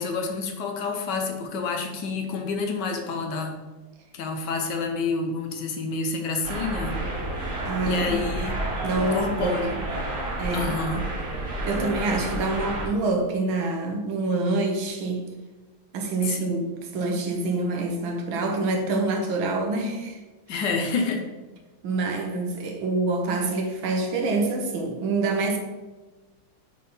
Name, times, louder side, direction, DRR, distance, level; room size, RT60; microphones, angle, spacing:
voice 1, 0.0-3.6 4.1-7.0 7.8-8.6 9.0-9.8 10.5-11.1 16.2-16.7 20.5-21.2, left 4 dB, 65° left, 4 dB, 1.3 m, -29 dB
sound 1, 6.4-12.9, right 1 dB, 40° right, 2.2 m, -30 dB
voice 2, 7.7-8.2 8.8-9.9 10.4-10.7 11.6-15.3 15.9-16.6 16.9-20.2 21.8-25.6, right 3 dB, 75° right, 3 dB, 1.6 m, -26 dB
5.4 x 4.0 x 5.4 m, 1.2 s
omnidirectional pair, 2.3 m